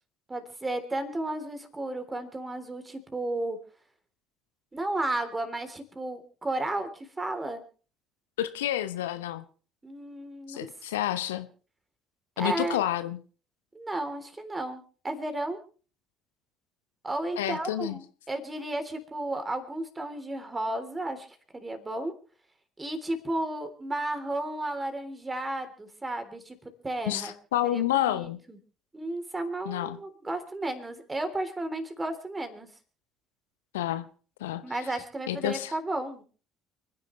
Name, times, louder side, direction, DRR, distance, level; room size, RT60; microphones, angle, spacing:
voice 1, 0.3-3.6 4.7-7.6 9.8-10.7 12.4-12.8 13.8-15.6 17.0-21.3 21.5-22.1 22.8-27.3 27.7-28.6 28.9-32.7 34.6-36.2, right 2 dB, 20° right, 3.5 m, -33 dB
voice 2, 8.4-9.4 10.5-11.5 12.4-13.2 17.4-18.0 27.1-28.4 29.6-30.0 33.7-34.1 34.4-34.6 35.3-35.7, left 13 dB, 75° left, 0.9 m, -29 dB
29.5 x 10.5 x 3.3 m
figure-of-eight pair, 55°, 0 cm